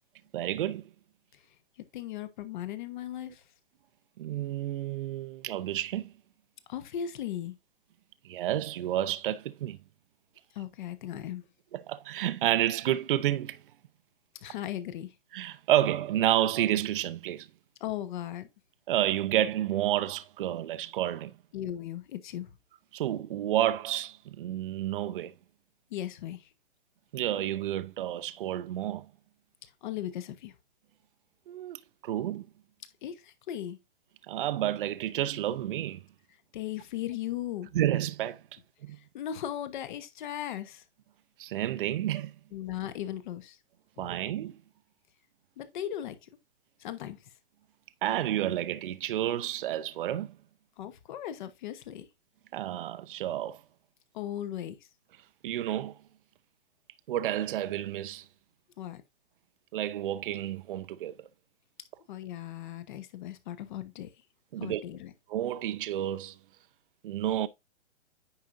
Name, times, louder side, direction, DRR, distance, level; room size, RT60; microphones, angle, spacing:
voice 1, 0.3-0.9 4.2-6.1 8.2-9.8 11.7-13.6 15.3-17.5 18.9-21.3 22.9-25.3 27.1-29.1 31.5-32.5 34.3-36.0 37.7-38.4 38.8-39.0 41.4-42.3 44.0-44.6 48.0-50.4 52.5-53.6 55.4-56.0 57.1-58.2 59.7-61.2 64.5-64.8 65.3-66.4 67.0-67.5, right 12 dB, 50° right, 0.6 m, -30 dB
voice 2, 1.9-3.4 6.7-7.5 10.5-11.4 14.4-15.1 17.8-18.5 21.5-22.5 25.9-26.5 29.6-30.6 33.0-33.8 36.5-37.7 38.9-40.8 42.5-43.6 44.0-44.1 45.6-46.3 46.8-47.2 50.8-52.1 54.1-54.8 58.8-59.0 62.1-64.1 64.6-65.1, left 11 dB, 40° left, 1.1 m, -37 dB
9.5 x 5.6 x 2.6 m
hypercardioid pair, 145°, 35 cm